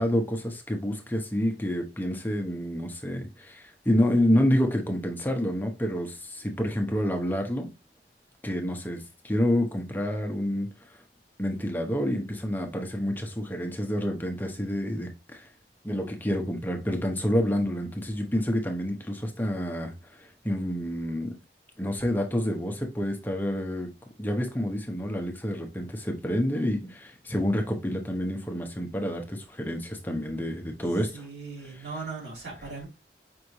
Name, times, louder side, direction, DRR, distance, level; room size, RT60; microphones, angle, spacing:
voice 1, 0.0-7.7 8.4-10.7 11.4-15.5 15.8-19.9 20.2-21.3 21.8-23.9 24.2-31.2 31.6-31.9, equal, 10° left, 0.8 m, -28 dB
voice 2, 31.1-32.9, right 4 dB, 90° right, 2.7 m, -38 dB
5.2 x 3.2 x 2.8 m
head